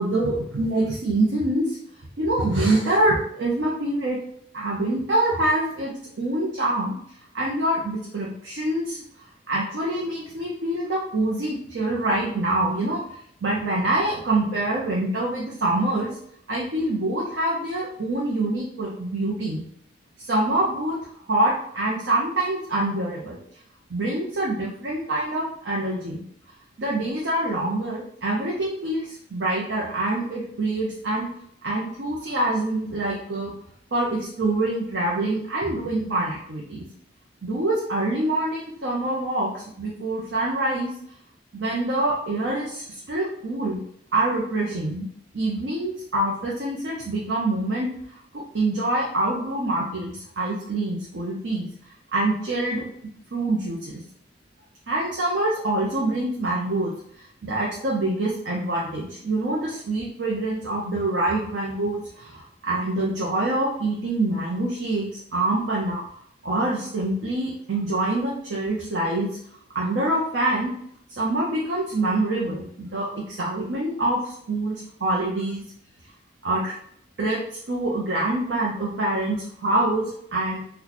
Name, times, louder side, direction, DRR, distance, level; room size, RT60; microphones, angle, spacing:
voice 1, 0.0-1.8 2.2-4.2 4.5-6.9 7.3-9.0 9.5-13.0 13.4-16.1 16.5-19.6 20.2-21.0 21.3-23.4 23.9-26.2 26.8-31.3 31.6-33.5 33.9-36.8 37.4-40.9 41.5-43.8 44.1-45.1 45.3-47.9 48.3-51.7 52.1-52.8 53.3-54.0 54.9-56.9 57.4-66.0 66.4-69.3 69.7-70.7 71.2-75.6 76.4-76.7 77.2-77.4 77.7-80.6, right 2 dB, 70° right, -4 dB, 0.7 m, -25 dB
3.0 x 2.3 x 4.0 m, 0.67 s
head